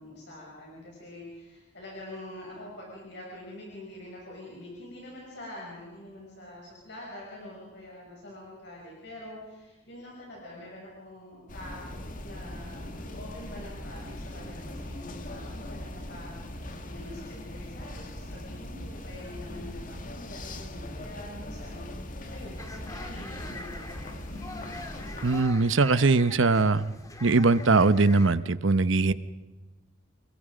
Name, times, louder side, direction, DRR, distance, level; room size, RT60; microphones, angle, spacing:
voice 1, 0.0-24.1, left 1 dB, 60° left, -3 dB, 6.7 m, -45 dB
sound 1, 11.5-25.4, left 1 dB, 45° left, 1.9 m, -40 dB
sound 2, 22.6-28.3, left 2 dB, 15° left, 1.9 m, -44 dB
voice 2, 25.2-26.9 27.2-29.1, right 3 dB, 75° right, 15 dB, 0.9 m, -21 dB
29.0 x 21.5 x 5.1 m, 1.2 s
head